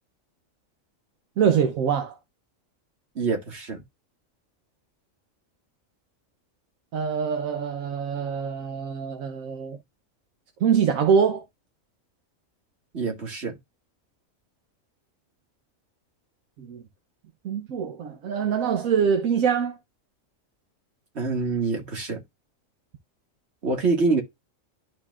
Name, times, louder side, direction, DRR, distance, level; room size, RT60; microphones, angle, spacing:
voice 1, 1.4-2.2 6.9-9.8 10.6-11.4 16.6-16.8 17.4-19.8, right 7 dB, 75° right, 1.2 m, -24 dB
voice 2, 3.2-3.8 12.9-13.6 21.2-22.2 23.6-24.2, right 4 dB, 55° right, 2.2 m, -25 dB
11.5 x 4.5 x 2.4 m
omnidirectional pair, 1.4 m